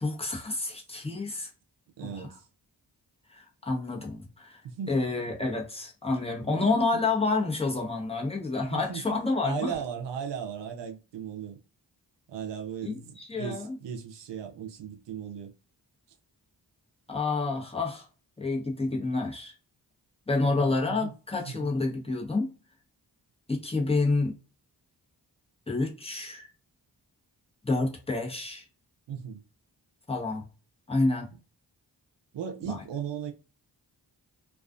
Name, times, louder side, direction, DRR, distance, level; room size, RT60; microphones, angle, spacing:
voice 1, 0.0-1.5 2.0-2.3 3.3-4.6 4.9-9.7 12.8-13.7 17.1-18.1 18.4-19.5 20.3-22.5 23.5-24.3 25.7-26.5 27.6-28.6 30.1-30.4 30.9-31.3 32.6-32.8, left 3 dB, 15° left, 0.9 m, -29 dB
voice 2, 2.0-2.5 4.6-4.9 6.5-6.6 6.9-7.0 8.7-11.6 12.3-15.5 20.4-21.1 21.4-21.6 29.1-29.4 32.3-33.3, right 8 dB, 80° right, 0.6 m, -37 dB
2.3 x 2.3 x 2.4 m
cardioid pair, 55°, 42 cm